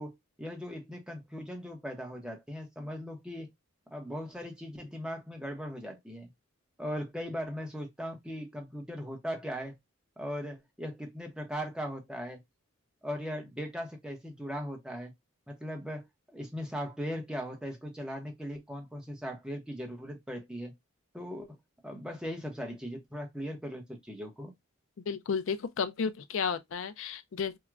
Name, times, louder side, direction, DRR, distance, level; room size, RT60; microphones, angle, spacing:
voice 1, 0.0-3.5 3.9-6.3 6.8-9.8 10.2-12.4 13.0-15.1 15.5-16.1 16.3-20.7 21.1-21.5 21.8-24.5, equal, 5° right, 0.7 m, -39 dB
voice 2, 25.1-27.6, left 6 dB, 65° left, 0.4 m, -32 dB
4.5 x 2.1 x 2.3 m
head